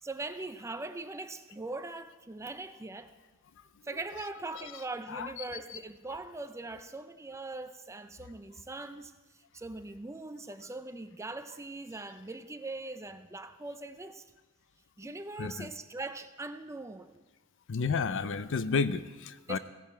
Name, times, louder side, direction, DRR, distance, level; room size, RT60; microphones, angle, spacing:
voice 1, 0.0-3.1 3.8-14.2 15.0-17.2 19.5-19.6, right 2 dB, 15° right, 10 dB, 0.5 m, -41 dB
voice 2, 5.1-5.4 5.7-5.8 15.0-15.1 15.4-15.7 17.7-19.6, left 5 dB, 60° left, 14 dB, 0.5 m, -32 dB
16.0 x 10.5 x 4.3 m, 1.3 s
head